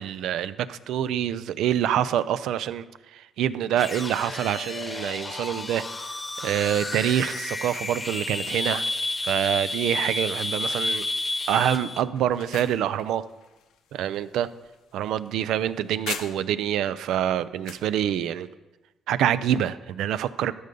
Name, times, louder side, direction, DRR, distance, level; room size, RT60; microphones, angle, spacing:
voice 1, 0.0-2.9 3.1-5.8 6.4-8.9 9.2-11.1 11.5-13.2 13.9-14.5 14.9-18.5 19.1-20.5, right 10 dB, 85° right, 15 dB, 0.4 m, -26 dB
sound 1, 3.7-12.0, left 2 dB, 25° left, 0.9 m, -31 dB
sound 2, 12.1-16.7 17.1-17.9, left 8 dB, 85° left, 0.8 m, -41 dB
13.0 x 5.4 x 6.7 m, 1.1 s
cardioid pair, 90°, 0 cm